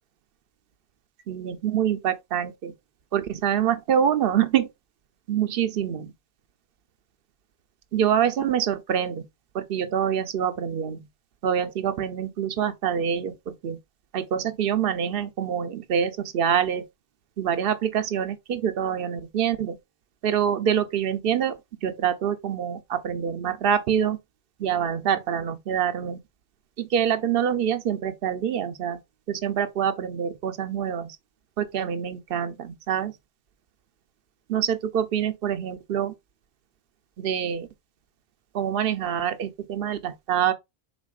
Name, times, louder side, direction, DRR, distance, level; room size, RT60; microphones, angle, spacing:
voice 1, 1.3-2.7 3.1-4.7 5.3-6.1 7.9-9.2 9.5-11.0 11.4-13.8 14.1-16.9 17.4-19.8 20.2-21.6 21.8-24.2 24.6-26.2 26.8-29.0 29.3-31.2 31.6-33.1 34.5-36.1 37.2-37.7 38.5-40.5, right 9 dB, 65° right, 0.8 m, -25 dB
5.1 x 3.9 x 2.3 m
omnidirectional pair, 1.1 m